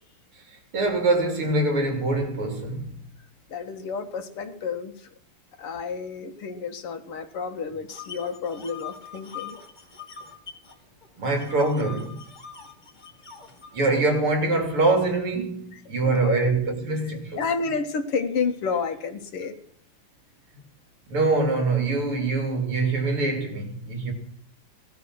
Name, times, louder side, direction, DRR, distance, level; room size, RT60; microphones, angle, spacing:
voice 1, 0.5-2.9 11.2-12.2 13.7-17.4 21.1-24.1, right 3 dB, 75° right, 3.8 m, -24 dB
voice 2, 3.5-5.1 5.6-9.6 16.1-16.5 17.0-19.6, left 5 dB, 85° left, 2.4 m, -30 dB
sound 1, 7.9-10.7 11.0-13.7, left 7 dB, 20° left, 1.9 m, -42 dB
18.0 x 12.0 x 6.2 m
omnidirectional pair, 2.4 m